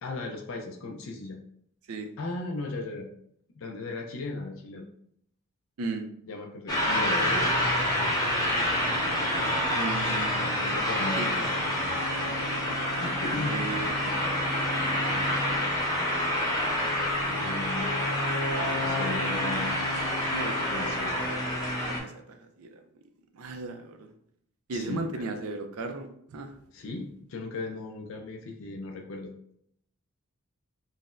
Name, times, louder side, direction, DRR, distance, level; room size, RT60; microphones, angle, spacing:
voice 1, 0.0-1.4 2.2-3.1 3.6-4.8 6.3-7.8 10.6-11.6 13.0-13.6 17.3-17.9 18.8-19.7 20.2-20.4 20.7-21.3 24.7-25.2 26.7-29.3, left 3 dB, 65° left, 1 dB, 0.4 m, -36 dB
sound 1, 6.7-22.0, left 1 dB, 15° left, 0.7 m, -27 dB
voice 2, 9.7-10.7 11.2-12.0 13.5-14.1 14.9-15.7 18.1-18.2 20.3-22.8 23.3-24.1 24.7-26.5, right 3 dB, 80° right, 6 dB, 0.4 m, -37 dB
3.9 x 2.0 x 2.5 m, 0.71 s
head